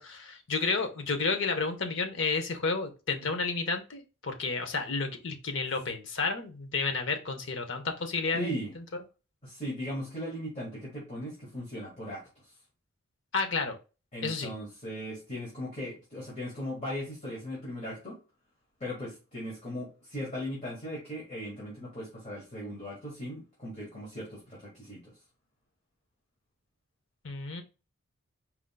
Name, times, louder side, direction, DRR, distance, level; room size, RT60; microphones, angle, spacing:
voice 1, 0.0-9.0 13.3-13.8 14.2-14.5 27.2-27.6, left 4 dB, 60° left, 6 dB, 0.7 m, -31 dB
voice 2, 8.3-8.7 9.4-12.5 14.1-18.2 18.8-25.1, equal, 30° left, -5 dB, 1.7 m, -38 dB
4.4 x 3.8 x 2.2 m, 0.31 s
head